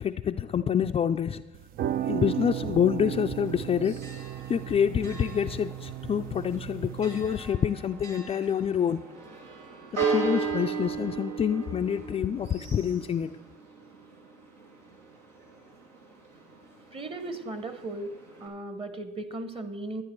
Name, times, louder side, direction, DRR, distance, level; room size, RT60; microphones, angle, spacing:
voice 1, 0.0-1.4 2.1-4.0 4.5-9.0 9.9-13.4, left 8 dB, 30° left, 0.4 m, -27 dB
sound 1, 1.5-7.5, right 11 dB, 45° right, 0.4 m, -35 dB
Church bell, 3.4-18.5, right 5 dB, 80° right, 2.5 m, -37 dB
voice 2, 16.9-18.1 18.4-20.0, right 2 dB, 25° right, 1.3 m, -36 dB
11.5 x 10.0 x 4.6 m
hypercardioid pair, 80°, 21 cm